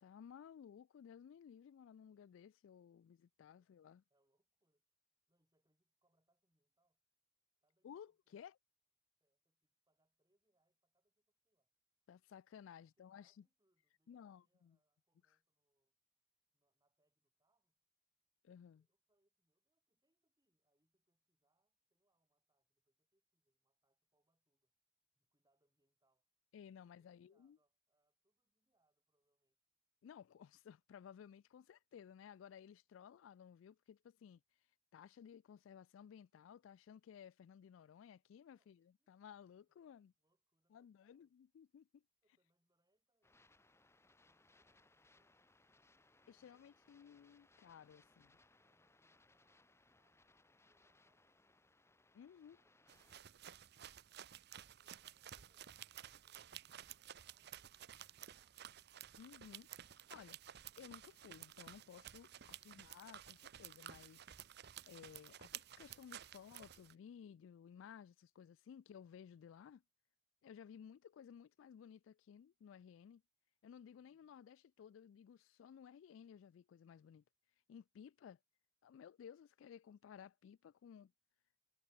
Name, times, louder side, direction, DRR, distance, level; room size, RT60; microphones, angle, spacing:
voice 1, 0.0-4.0 7.8-8.6 12.1-13.4 14.1-14.8 15.3-15.4 18.4-18.9 26.5-27.6 30.0-34.4 34.9-40.1 40.7-42.0 46.3-48.4 52.1-52.6 59.2-60.4 60.8-64.2 64.9-69.8 70.4-73.2 73.6-77.2 77.7-78.4 78.8-81.1, left 8 dB, 80° left, 0.3 m, -57 dB
voice 2, 3.1-4.8 5.3-7.0 7.6-8.5 9.2-11.7 12.8-16.0 16.5-17.8 18.7-24.7 25.1-26.3 26.8-29.6 31.2-31.4 36.5-36.6 38.5-39.1 39.5-39.8 40.1-41.4 42.2-45.4 46.2-47.0 48.6-51.9 52.6-54.3 54.7-59.1 73.9-74.4, right 1 dB, 20° right, 7.9 m, -87 dB
sound 1, 43.2-53.2, left 2 dB, 15° left, 2.0 m, -71 dB
sound 2, 52.9-66.9, right 10 dB, 60° right, 0.7 m, -54 dB
head